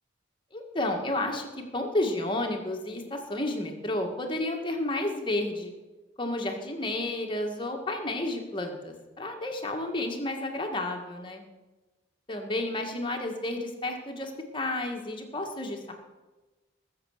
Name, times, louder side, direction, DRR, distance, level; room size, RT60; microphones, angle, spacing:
voice 1, 0.5-5.7 6.2-11.4 12.3-15.9, left 1 dB, 25° left, 3 dB, 1.8 m, -31 dB
20.0 x 7.5 x 6.6 m, 1.2 s
head